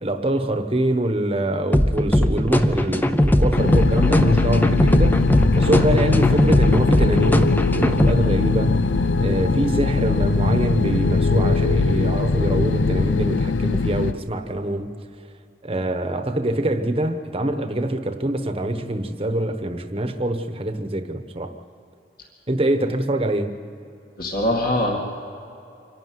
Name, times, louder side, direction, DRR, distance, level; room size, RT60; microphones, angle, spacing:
voice 1, 0.0-5.2 5.5-8.8 9.2-14.9 15.6-21.5 22.5-23.5, right 1 dB, 30° right, 8 dB, 1.1 m, -24 dB
sound 1, 1.7-8.1, left 1 dB, 10° left, 0.6 m, -19 dB
sound 2, 3.6-14.1, left 4 dB, 80° left, 0.6 m, -21 dB
voice 2, 24.2-25.0, left 1 dB, 50° left, -2 dB, 2.2 m, -23 dB
25.5 x 11.5 x 9.5 m, 2.7 s
head